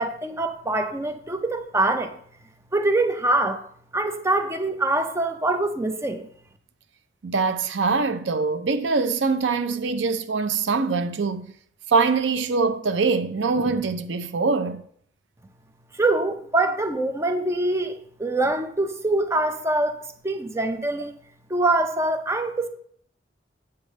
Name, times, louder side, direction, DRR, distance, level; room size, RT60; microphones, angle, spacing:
voice 1, 0.0-2.2 2.7-3.6 3.9-6.3 15.9-20.0 20.2-21.1 21.5-22.7, right 2 dB, 15° right, 0.5 m, -24 dB
voice 2, 7.2-11.5 11.9-14.8, right 4 dB, 85° right, 0.6 m, -23 dB
8.1 x 3.3 x 6.4 m
head